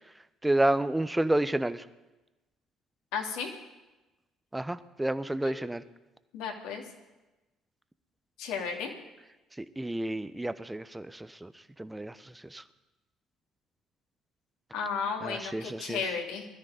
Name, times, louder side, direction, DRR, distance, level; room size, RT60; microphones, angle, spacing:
voice 1, 0.4-1.8 4.5-5.8 9.6-11.5 11.8-12.1 12.5-12.6 15.2-16.0, right 1 dB, 10° right, 13 dB, 1.0 m, -30 dB
voice 2, 3.1-3.5 5.4-5.6 6.3-6.8 8.4-8.9 14.7-16.5, left 6 dB, 65° left, 1 dB, 2.8 m, -34 dB
21.0 x 13.5 x 5.1 m, 1.1 s
figure-of-eight pair, 50°, 0 cm